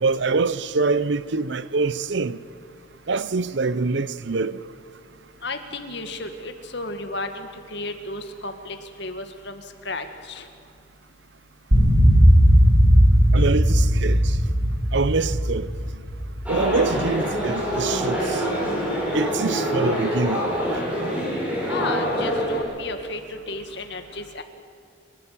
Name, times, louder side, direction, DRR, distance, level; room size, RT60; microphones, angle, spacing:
voice 1, 0.0-2.4 3.1-4.6 13.3-14.3 14.9-15.7 16.5-18.4 19.1-20.4, right 4 dB, 60° right, 0.7 m, -24 dB
voice 2, 5.4-10.5 21.7-24.4, left 2 dB, 60° left, 1.9 m, -33 dB
sound 1, 11.7-17.1, equal, 45° right, 2.8 m, -17 dB
sound 2, 16.5-22.6, equal, 5° right, 5.4 m, -25 dB
28.0 x 12.0 x 8.4 m
head